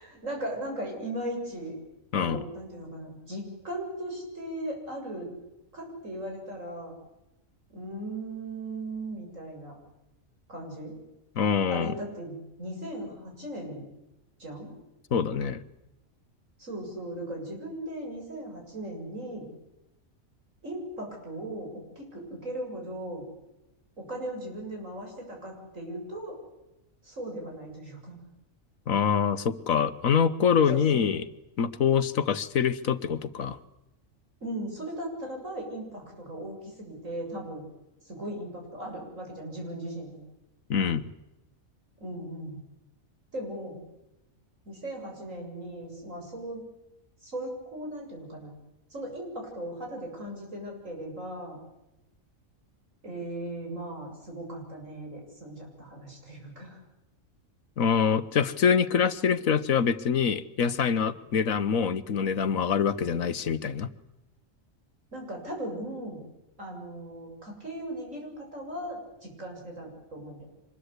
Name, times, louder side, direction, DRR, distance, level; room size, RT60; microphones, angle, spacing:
voice 1, 0.0-1.8 2.2-5.3 5.7-6.9 7.7-9.8 10.5-11.0 11.7-13.8 14.4-14.7 16.6-19.5 20.6-23.2 24.0-26.4 27.0-28.2 30.7-31.1 34.4-37.7 38.0-40.2 42.0-42.6 43.3-43.8 44.7-46.6 47.2-48.5 48.9-51.6 53.0-56.8 65.1-66.2 66.6-70.5, right 1 dB, 65° right, 1 dB, 8.0 m, -38 dB
voice 2, 11.4-11.9 15.1-15.6 28.9-31.2 31.6-33.6 40.7-41.0 57.8-63.9, left 7 dB, 75° left, 13 dB, 1.5 m, -25 dB
25.5 x 21.5 x 8.2 m, 0.94 s
omnidirectional pair, 1.4 m